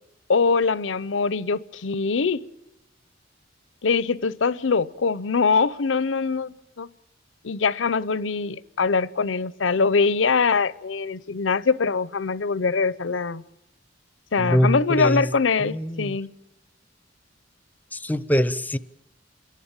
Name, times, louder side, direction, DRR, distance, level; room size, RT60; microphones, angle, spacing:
voice 1, 0.3-2.4 3.8-6.9 7.4-13.4 14.3-16.3, left 4 dB, 80° left, 0.7 m, -23 dB
voice 2, 14.4-15.2 15.6-16.2 17.9-18.8, equal, 10° left, 0.6 m, -23 dB
28.5 x 11.0 x 8.9 m
head